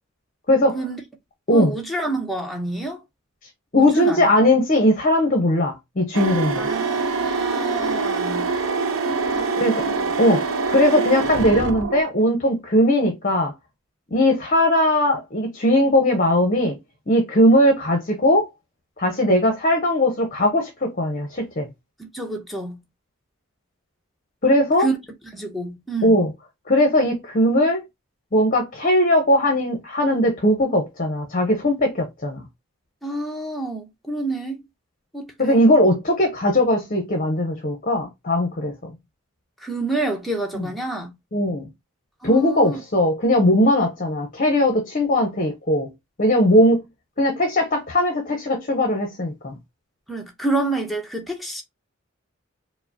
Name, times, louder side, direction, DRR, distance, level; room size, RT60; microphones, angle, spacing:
voice 1, 1.5-3.0 3.8-4.3 6.5-8.5 9.3-10.1 22.0-22.8 24.8-25.0 25.3-26.2 33.0-34.6 35.1-35.7 39.6-41.1 42.2-42.8 50.1-51.6, right 2 dB, ahead, 0.7 m, -28 dB
voice 2, 3.7-6.7 9.6-9.8 10.2-13.5 14.1-16.8 17.1-18.5 19.0-21.7 24.4-24.9 26.0-26.3 26.7-27.8 28.3-32.5 35.4-38.9 40.6-40.7 41.3-41.7 42.2-45.9 46.2-46.8 47.2-49.5, left 1 dB, 40° left, 0.7 m, -19 dB
sound 1, 6.1-12.0, right 4 dB, 70° right, 0.6 m, -24 dB
4.7 x 2.1 x 2.7 m
head